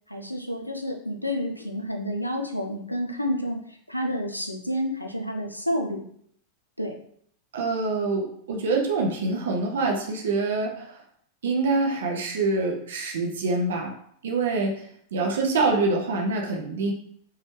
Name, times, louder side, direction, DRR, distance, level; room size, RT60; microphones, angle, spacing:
voice 1, 0.1-6.0 6.8-7.0, equal, 90° left, 2 dB, 0.4 m, -30 dB
voice 2, 7.5-11.0 11.4-13.9 14.2-14.8 15.1-16.9, right 3 dB, 60° right, 1 dB, 0.5 m, -25 dB
3.0 x 2.3 x 3.0 m, 0.64 s
figure-of-eight pair, 90°, 0 cm